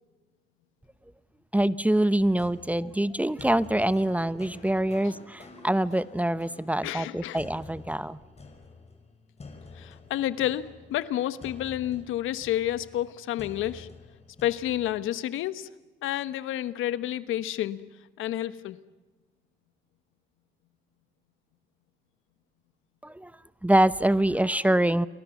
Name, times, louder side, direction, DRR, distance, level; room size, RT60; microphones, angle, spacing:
voice 1, 1.5-8.2 23.0-23.3 23.6-25.1, right 1 dB, 5° right, 16 dB, 0.8 m, -25 dB
sound 1, 2.2-15.1, left 3 dB, 35° left, 5.8 m, -49 dB
voice 2, 6.8-7.4 9.7-13.9 14.4-15.7 16.0-17.8 18.2-18.8, left 12 dB, 85° left, 14 dB, 1.2 m, -30 dB
29.5 x 23.5 x 7.2 m, 1.2 s
cardioid pair, 90°, 20 cm